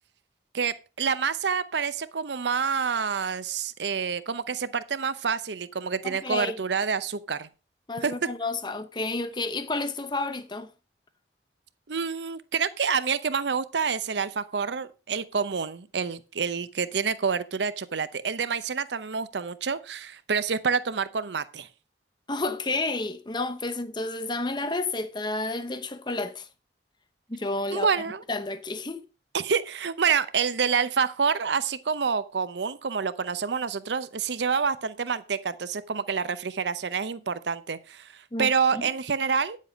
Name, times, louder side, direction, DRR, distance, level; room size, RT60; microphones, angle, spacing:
voice 1, 0.5-7.5 8.0-8.1 11.9-21.7 27.7-28.2 29.3-39.6, right 6 dB, 80° right, 0.7 m, -28 dB
voice 2, 6.0-6.6 7.9-10.7 22.3-26.5 27.3-27.9 28.3-29.0 38.3-38.8, left 2 dB, 25° left, 0.8 m, -31 dB
10.0 x 7.5 x 5.1 m
head